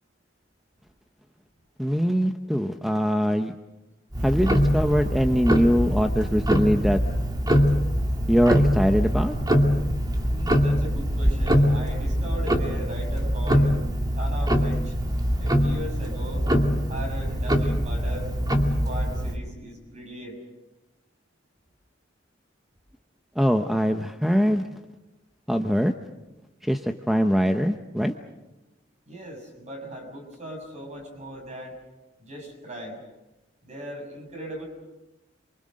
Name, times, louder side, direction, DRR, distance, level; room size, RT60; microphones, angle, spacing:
voice 1, 1.8-3.5 4.2-7.0 8.3-9.4 23.4-24.7 25.5-25.9 26.6-28.1, equal, ahead, 6 dB, 0.9 m, -22 dB
Tick-tock, 4.1-19.4, equal, 20° right, 2.3 m, -23 dB
voice 2, 10.3-13.8 14.2-14.9 15.4-16.4 16.9-18.3 18.8-20.4 29.1-31.8 32.2-33.0 33.6-34.7, right 1 dB, 40° right, 3 dB, 6.7 m, -38 dB
27.5 x 24.0 x 6.5 m, 1.0 s
head